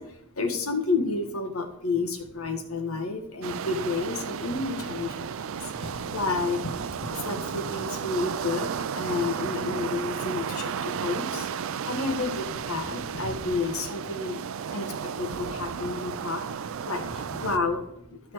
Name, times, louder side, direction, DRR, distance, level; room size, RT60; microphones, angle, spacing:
voice 1, 0.0-18.3, left 3 dB, 70° left, 5 dB, 1.6 m, -31 dB
sound 1, 3.4-17.6, right 7 dB, 65° right, 0.4 m, -33 dB
13.0 x 5.7 x 4.7 m, 0.77 s
head